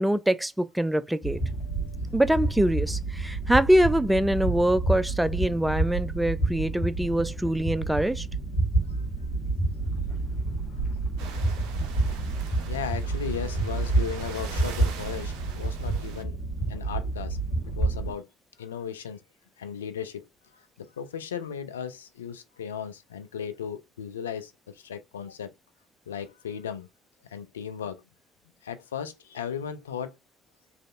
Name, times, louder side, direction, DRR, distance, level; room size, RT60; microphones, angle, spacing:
voice 1, 0.0-1.4 2.1-8.3, right 1 dB, 5° right, 0.4 m, -24 dB
sound 1, 1.2-18.1, right 2 dB, 65° left, 1.3 m, -29 dB
voice 2, 1.6-2.1 8.9-9.0 10.7-10.9 12.4-16.4 16.7-17.4 17.7-18.3 18.6-19.2 19.6-25.5 26.1-26.9 27.3-28.0 28.6-30.2, left 8 dB, 85° left, 0.3 m, -36 dB
sound 2, 11.2-16.2, right 6 dB, 75° right, 0.5 m, -43 dB
3.2 x 2.5 x 2.4 m
hypercardioid pair, 50°, 0 cm